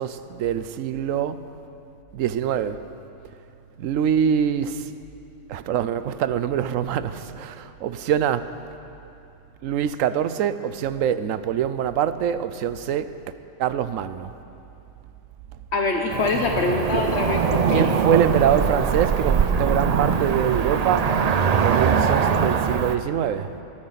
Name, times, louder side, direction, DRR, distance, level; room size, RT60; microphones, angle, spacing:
voice 1, 0.0-1.5 2.1-2.8 3.8-4.9 5.5-8.5 9.6-13.1 13.6-14.3 17.7-21.1 21.5-23.5, right 9 dB, 85° right, 1.0 m, -24 dB
voice 2, 15.7-17.9, left 3 dB, 60° left, 1.1 m, -24 dB
Cricket / Motor vehicle (road), 16.1-23.0, right 6 dB, 55° right, 0.4 m, -22 dB
22.0 x 13.5 x 4.1 m
omnidirectional pair, 1.3 m